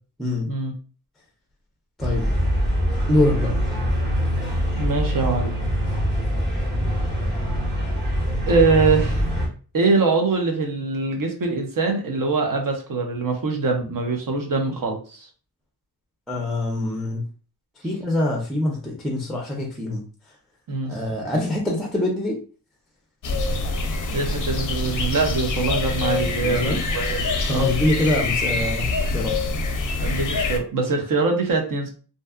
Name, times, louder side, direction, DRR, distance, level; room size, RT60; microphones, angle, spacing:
sound 1, 2.0-9.5, equal, 25° right, 1.1 m, -23 dB
voice 1, 3.1-3.5 16.3-17.2 17.8-20.0 20.8-22.4 26.2-26.8 27.5-29.3, left 1 dB, ahead, 0 dB, 0.5 m, -24 dB
voice 2, 4.7-5.5 8.4-9.3 9.7-15.3 20.7-20.9 24.1-27.7 28.0-28.1 30.0-31.9, right 3 dB, 55° right, 3 dB, 0.8 m, -23 dB
sound 2, 23.2-30.6, left 3 dB, 50° left, 0.5 m, -25 dB
2.7 x 2.3 x 2.2 m, 0.38 s
wide cardioid pair, 105°, 39 cm